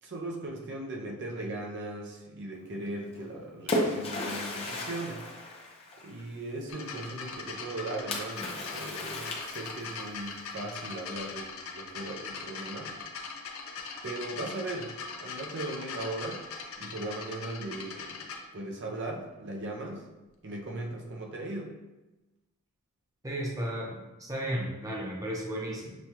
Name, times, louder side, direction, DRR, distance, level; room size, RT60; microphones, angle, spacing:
voice 1, 0.0-5.2 6.0-12.9 14.0-16.4 16.8-18.3 18.5-20.1 20.4-21.7, right 2 dB, 60° right, 0 dB, 0.6 m, -38 dB
Splash splatter, 3.1-6.3 8.1-10.0, left 1 dB, 30° left, 0.6 m, -34 dB
sound 1, 6.7-18.4 19.3-19.4, left 4 dB, 85° left, 0.5 m, -41 dB
voice 2, 23.2-25.9, equal, 15° right, -2 dB, 0.6 m, -34 dB
6.1 x 2.3 x 2.8 m, 1.0 s
head